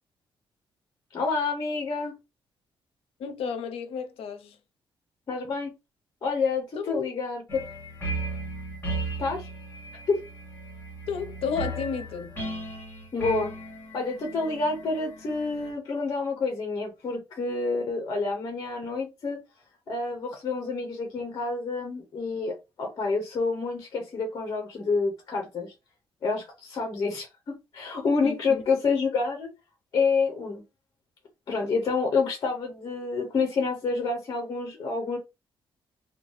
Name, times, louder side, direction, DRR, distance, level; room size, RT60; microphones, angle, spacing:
voice 1, 1.1-2.2 5.3-5.7 6.2-7.7 9.2-9.5 10.1-10.2 13.1-13.5 13.9-19.4 19.9-25.7 26.2-29.5 29.9-30.6 31.5-35.2, left 4 dB, 35° left, 0.8 m, -28 dB
voice 2, 3.2-4.6 6.8-7.1 11.1-12.4 28.2-28.6, left 6 dB, 75° left, 0.6 m, -32 dB
sound 1, 7.5-15.7, right 2 dB, 20° left, 1.6 m, -36 dB
2.9 x 2.3 x 3.0 m
cardioid pair, 160°, 10 cm